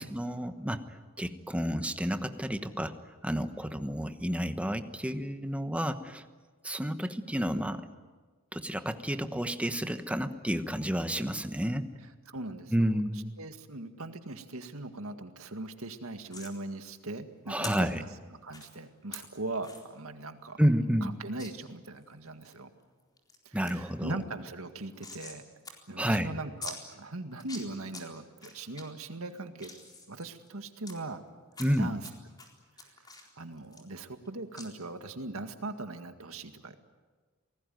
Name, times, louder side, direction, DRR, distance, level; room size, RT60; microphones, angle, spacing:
voice 1, 0.0-3.0 3.2-6.2 6.6-7.9 8.5-11.9 12.7-13.3 17.5-18.0 20.6-21.1 23.5-24.2 26.0-26.3 31.6-31.9, equal, 5° right, 9 dB, 1.2 m, -30 dB
voice 2, 12.3-12.9 13.4-18.1 18.4-20.6 21.0-22.7 23.5-25.4 25.9-29.7 30.1-31.2 31.8-32.1 32.8-32.9 33.4-36.8, right 2 dB, 75° right, 7 dB, 2.0 m, -40 dB
sound 1, 16.3-16.5 17.6-17.7 18.5-18.7 19.1-19.2 19.6-19.8 20.2-20.3 20.6-20.7 21.4-21.5 22.0-22.6 23.0-23.4 23.7-23.8 24.0-25.4 25.6-25.7 26.0-26.1 26.6-26.8 27.3-28.0 28.4-28.8 29.3-30.9 31.5-32.1 32.4-34.3 34.6-34.7, left 3 dB, 20° left, 4.0 m, -44 dB
28.0 x 19.0 x 9.3 m, 1.4 s
head